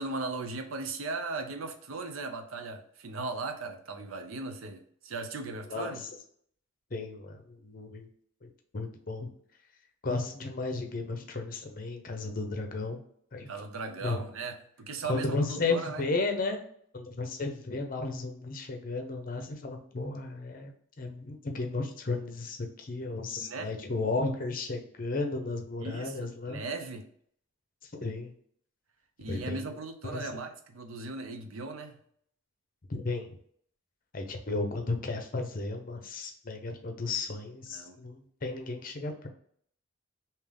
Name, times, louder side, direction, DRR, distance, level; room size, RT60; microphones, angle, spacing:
voice 1, 0.0-6.0 13.5-16.1 23.4-23.7 25.8-27.1 29.2-32.0 37.7-38.0, right 3 dB, 80° right, 7 dB, 0.6 m, -38 dB
voice 2, 5.7-6.0 6.9-8.1 8.4-8.5 8.7-9.3 10.0-13.0 13.3-13.5 14.0-14.2 15.1-16.6 16.9-26.6 28.0-28.3 29.3-29.7 30.1-30.3 32.9-33.3 34.1-39.3, left 3 dB, 40° left, 4 dB, 0.6 m, -34 dB
3.5 x 2.8 x 3.4 m, 0.62 s
head